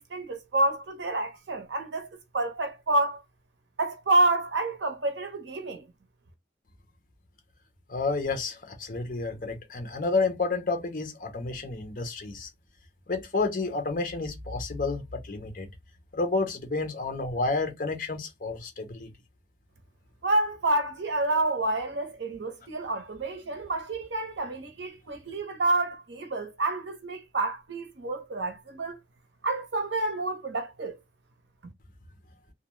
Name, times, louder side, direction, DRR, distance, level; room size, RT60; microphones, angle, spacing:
voice 1, 0.0-2.1 2.3-3.2 3.8-5.9 20.2-29.0 29.4-31.0 31.6-31.7, right 2 dB, 75° right, 0.7 m, -28 dB
voice 2, 7.9-12.5 13.1-15.7 16.1-19.1, left 3 dB, 45° left, 0.7 m, -30 dB
2.4 x 2.2 x 3.0 m
head